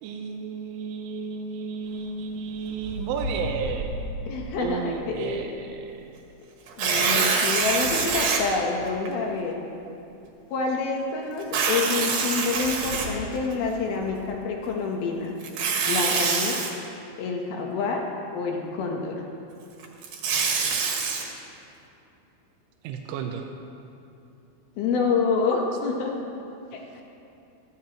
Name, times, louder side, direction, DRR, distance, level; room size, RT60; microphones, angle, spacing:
voice 1, 0.0-5.9 22.8-23.4, right 6 dB, 90° right, 3 dB, 3.1 m, -33 dB
sound 1, 1.8-5.9 6.9-9.2 12.5-13.4 13.8-14.3, equal, 35° left, 2.6 m, -37 dB
voice 2, 4.3-4.9 5.2-5.5 6.8-9.6 10.5-15.3 15.9-16.6 17.2-18.0 18.3-19.2 24.8-26.1 26.7-27.0, left 4 dB, 75° left, 1 dB, 2.4 m, -27 dB
Tearing, 6.7-8.4 9.1-9.2 11.4-13.5 15.4-16.7 19.8-21.2, right 5 dB, 65° right, 2.7 m, -25 dB
19.5 x 15.0 x 3.0 m, 2.8 s
omnidirectional pair, 5.5 m